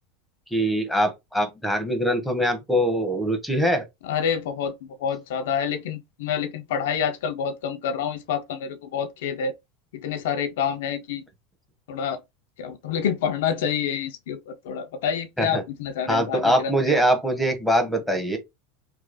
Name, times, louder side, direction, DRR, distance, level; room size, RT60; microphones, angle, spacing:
voice 1, 0.5-3.8 15.4-15.6 16.1-18.4, equal, ahead, 1.2 m, -23 dB
voice 2, 4.0-4.7 5.0-9.5 9.9-11.2 11.9-12.2 12.6-17.0, left 7 dB, 70° left, 0.5 m, -28 dB
3.0 x 2.3 x 4.0 m
hypercardioid pair, 90°, 0 cm